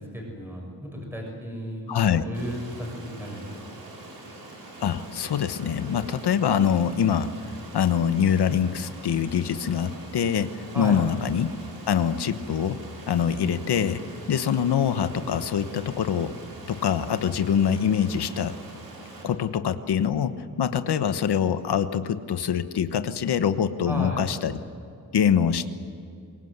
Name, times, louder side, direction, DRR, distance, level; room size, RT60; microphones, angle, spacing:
voice 1, 0.0-3.6 10.7-11.1 23.8-24.3, equal, 5° right, -1 dB, 6.6 m, -34 dB
voice 2, 1.9-2.2 4.8-7.3 7.7-11.5 11.9-12.8 13.1-14.0 14.3-16.4 16.7-18.5 19.2-24.6 25.1-25.6, left 8 dB, 90° left, 10 dB, 1.2 m, -24 dB
Stream, 2.3-19.2, right 2 dB, 65° right, 6.6 m, -44 dB
24.5 x 22.5 x 8.1 m, 2.5 s
wide cardioid pair, 130°, 38 cm